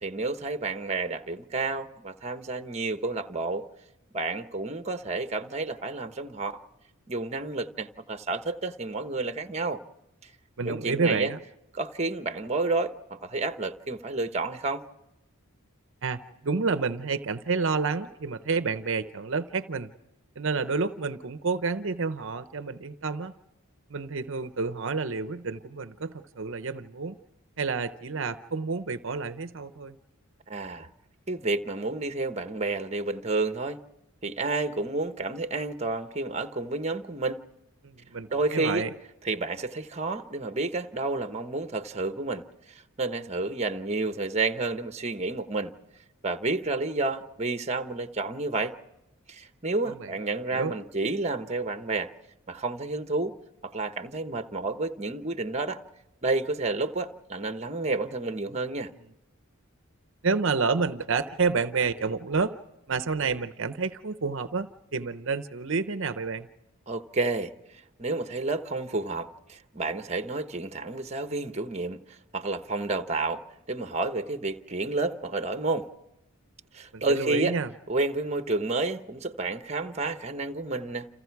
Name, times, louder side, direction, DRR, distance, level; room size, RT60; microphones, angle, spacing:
voice 1, 0.0-3.7 4.1-6.6 7.1-9.8 10.2-10.3 10.6-11.3 11.7-14.8 30.5-30.9 31.3-33.8 34.2-37.4 38.3-38.9 39.2-45.7 46.2-48.7 49.3-52.1 52.5-53.3 53.6-55.8 56.2-58.9 66.9-67.5 68.0-73.4 73.7-75.9 76.7-77.6 77.9-81.1, right 3 dB, 30° right, 1.0 m, -30 dB
voice 2, 10.6-11.4 16.0-19.9 20.4-23.3 23.9-27.2 27.6-29.9 37.8-38.9 49.9-50.1 50.5-50.7 60.2-62.5 62.9-66.5 76.9-77.7, right 4 dB, 60° right, 0.8 m, -29 dB
30.0 x 28.0 x 4.7 m
head